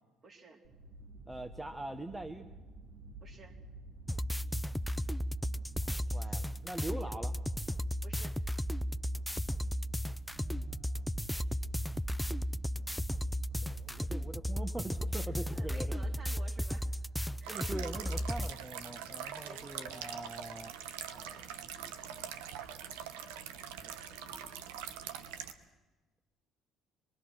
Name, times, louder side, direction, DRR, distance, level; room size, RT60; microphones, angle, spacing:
voice 1, 0.2-0.6 3.2-3.6 6.1-6.4 6.9-7.3 8.0-8.4 15.2-16.8 17.4-17.7 19.0-19.7, right 4 dB, 40° right, 1 dB, 4.1 m, -54 dB
sound 1, 0.6-16.3, right 2 dB, 65° right, 4.7 m, -52 dB
voice 2, 1.3-2.5 5.9-7.3 10.4-11.1 13.6-15.9 17.5-20.8 21.1-22.9 23.6-24.6 24.8-24.9, right 2 dB, 15° right, 7 dB, 1.3 m, -44 dB
sound 2, 4.1-18.5, equal, 5° left, 0.7 m, -35 dB
sound 3, 17.4-25.5, right 9 dB, 85° right, 1.2 m, -43 dB
25.5 x 21.0 x 6.3 m, 1.3 s
hypercardioid pair, 60°, 0 cm